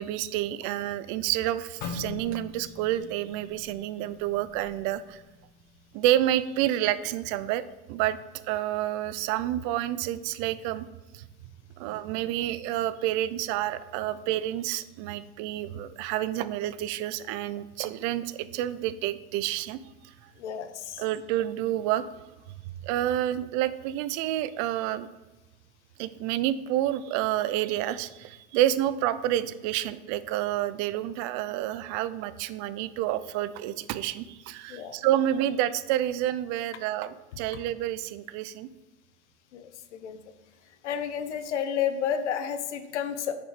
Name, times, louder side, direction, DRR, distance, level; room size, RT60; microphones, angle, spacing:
voice 1, 0.0-5.2 5.9-7.6 7.9-8.2 8.5-10.9 11.1-11.2 11.8-19.8 21.0-22.0 22.8-25.1 26.0-38.7, right 13 dB, 55° right, 15 dB, 0.5 m, -29 dB
sound 1, 1.8-5.8 6.2-6.5 7.1-7.4, left 6 dB, 50° left, 1.1 m, -42 dB
voice 2, 20.4-21.1 34.7-35.0 37.5-37.6 39.5-40.2 40.8-43.3, left 8 dB, 85° left, 10 dB, 0.8 m, -31 dB
6.4 x 5.1 x 4.8 m, 1.1 s
hypercardioid pair, 95°, 34 cm